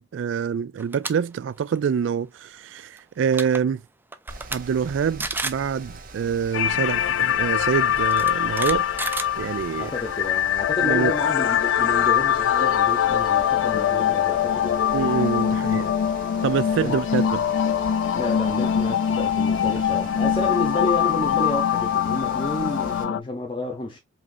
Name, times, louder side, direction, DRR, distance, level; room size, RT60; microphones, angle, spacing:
voice 1, 0.0-3.8 4.5-8.9 9.4-9.9 10.8-11.2 14.9-15.9 16.4-17.5 19.9-20.1, right 7 dB, 75° right, 0.3 m, -26 dB
sound 1, 0.8-1.1 1.5-1.8 3.0-3.1 3.3-3.6 4.1-4.6 4.9-5.0 5.2-5.6 6.9-7.0 8.0-9.9, right 3 dB, 10° right, 0.4 m, -31 dB
Mechanical fan, 4.3-23.0, right 3 dB, 50° right, 0.9 m, -43 dB
sound 2, 6.5-23.2, left 9 dB, 85° left, 0.3 m, -23 dB
voice 2, 9.8-14.8 16.8-17.0 18.1-24.0, left 2 dB, 25° left, 0.8 m, -30 dB
5.0 x 3.4 x 2.6 m
head